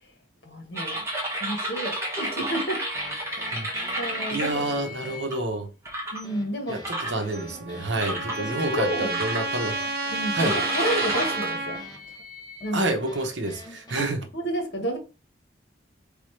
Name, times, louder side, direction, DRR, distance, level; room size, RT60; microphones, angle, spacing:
voice 1, 0.4-1.0 1.3-2.8 3.2-3.7 4.0-4.6 6.1-6.8 8.4-9.1 10.1-11.8 12.6-12.9 14.0-14.1 14.3-15.0, right 1 dB, 65° left, 1.3 m, -30 dB
sound 1, 0.7-5.3 5.9-6.2 6.8-7.6 8.0-8.4 9.1-9.8 10.4-12.7, right 1 dB, 15° right, 1.1 m, -32 dB
sound 2, 3.0-14.1, equal, 20° left, 1.0 m, -46 dB
voice 2, 4.3-5.7 6.7-9.9 10.3-10.6 12.7-14.2, right 2 dB, 80° right, 1.0 m, -28 dB
Trumpet, 7.3-11.8, right 3 dB, 50° right, 0.7 m, -30 dB
4.1 x 3.6 x 3.2 m
head